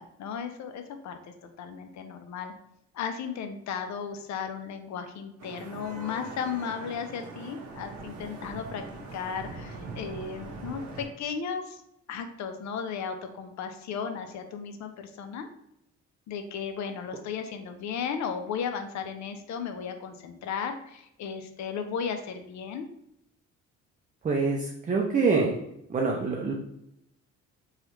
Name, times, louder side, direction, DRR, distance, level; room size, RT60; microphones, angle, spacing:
voice 1, 0.0-2.5 2.9-8.8 9.1-11.8 12.1-15.5 16.3-22.9, left 6 dB, 65° left, 7 dB, 0.5 m, -35 dB
Vehicle horn car horn honking / Traffic noise roadway noise, 5.4-11.1, right 3 dB, 65° right, 0.8 m, -42 dB
voice 2, 24.2-25.5 25.9-26.5, right 4 dB, 25° right, 0 dB, 0.5 m, -25 dB
3.1 x 2.3 x 3.1 m, 0.79 s
cardioid pair, 90°, 30 cm